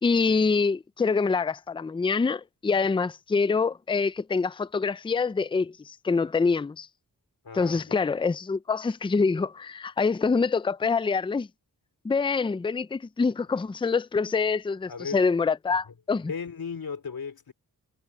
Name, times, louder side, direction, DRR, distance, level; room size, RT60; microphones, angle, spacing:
voice 1, 0.0-6.9 7.5-11.5 12.0-16.3, left 4 dB, 15° left, 0.4 m, -25 dB
voice 2, 7.4-8.0 14.9-15.3 16.3-17.5, left 6 dB, 65° left, 4.3 m, -36 dB
cardioid pair, 70°, 39 cm